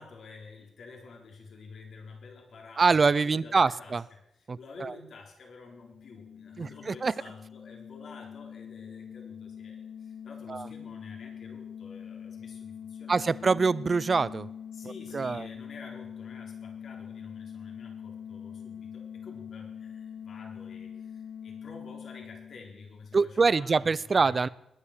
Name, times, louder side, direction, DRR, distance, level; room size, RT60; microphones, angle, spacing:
voice 1, 0.0-13.5 14.7-24.4, left 4 dB, 65° left, 2 dB, 3.9 m, -49 dB
voice 2, 2.8-4.0 4.5-4.9 6.6-7.1 10.5-10.7 13.1-14.5 15.1-15.4 23.1-24.5, right 4 dB, 35° right, 19 dB, 0.5 m, -25 dB
sound 1, 5.7-23.2, left 8 dB, 85° left, 0.6 m, -44 dB
21.0 x 10.0 x 6.7 m, 0.83 s
wide cardioid pair, 125°, 0 cm